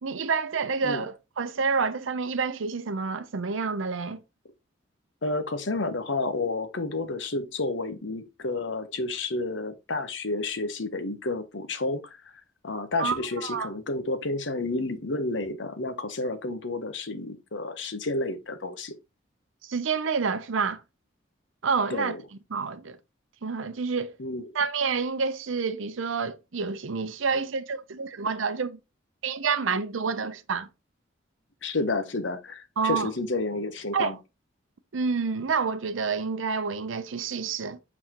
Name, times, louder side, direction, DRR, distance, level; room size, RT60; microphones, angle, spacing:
voice 1, 0.0-4.2 13.0-13.7 19.6-20.8 21.6-22.1 22.5-23.0 23.4-24.2 24.5-28.8 29.2-30.7 32.8-33.1 33.9-34.2 34.9-37.8, right 5 dB, 80° right, 0.6 m, -28 dB
voice 2, 5.2-12.0 12.6-18.9 21.9-22.2 24.2-24.5 31.6-34.2, left 2 dB, 65° left, 0.9 m, -30 dB
7.9 x 4.1 x 2.9 m
head